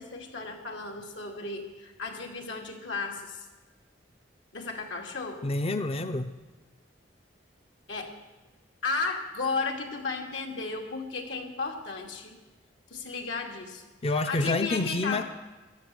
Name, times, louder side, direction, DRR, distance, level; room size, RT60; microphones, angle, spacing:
voice 1, 0.0-3.5 4.5-5.4 7.9-8.1 8.8-12.3 12.9-13.8 14.1-15.2, left 4 dB, 85° left, 2 dB, 2.4 m, -34 dB
voice 2, 5.4-6.3 14.0-15.2, left 2 dB, 35° left, 8 dB, 0.5 m, -28 dB
15.0 x 11.0 x 7.6 m, 1.2 s
head